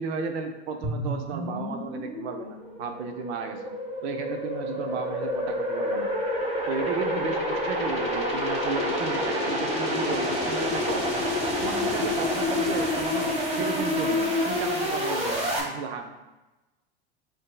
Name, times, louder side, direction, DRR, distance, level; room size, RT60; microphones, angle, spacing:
voice 1, 0.0-3.8 4.0-6.1 6.7-11.0 11.6-16.1, right 5 dB, 80° right, 5 dB, 0.6 m, -34 dB
sound 1, 0.8-15.6, left 1 dB, 20° right, 1.0 m, -28 dB
7.4 x 2.7 x 2.3 m, 1.1 s
hypercardioid pair, 110°, 32 cm